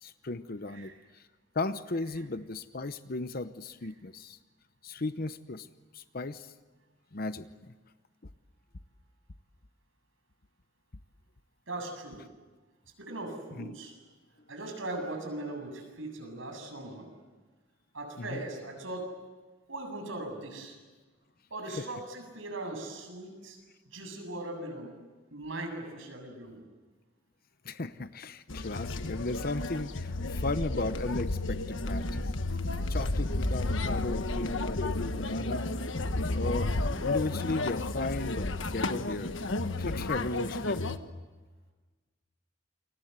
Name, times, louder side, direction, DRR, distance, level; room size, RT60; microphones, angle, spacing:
voice 1, 0.0-1.3 1.5-4.4 4.8-5.7 5.9-6.5 7.1-7.7 13.6-13.8 18.2-18.5 21.8-21.9 27.6-32.2 32.8-35.7 36.3-39.4 39.8-40.9, left 2 dB, 50° left, 12 dB, 0.8 m, -36 dB
voice 2, 11.7-12.2 13.0-14.0 14.5-17.1 17.9-19.1 19.7-20.8 21.5-23.6 23.9-24.9 25.3-26.6, right 2 dB, 80° right, 4 dB, 7.9 m, -39 dB
sound 1, 28.5-41.0, left 2 dB, 75° left, 1.4 m, -32 dB
29.0 x 24.5 x 8.1 m, 1.3 s
head